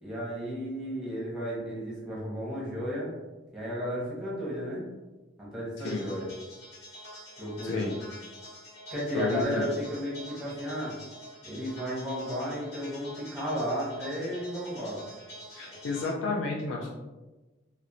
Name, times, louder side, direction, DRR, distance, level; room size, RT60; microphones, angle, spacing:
voice 1, 0.0-3.1 3.5-4.9 5.4-6.3 7.4-7.9 8.9-10.9 11.4-15.0, equal, 5° right, -6 dB, 0.7 m, -33 dB
sound 1, 5.8-16.1, equal, 60° left, 1.0 m, -47 dB
voice 2, 7.6-7.9 9.1-9.6 15.5-16.9, left 3 dB, 80° left, -2 dB, 0.4 m, -31 dB
2.9 x 2.0 x 2.5 m, 1.2 s
head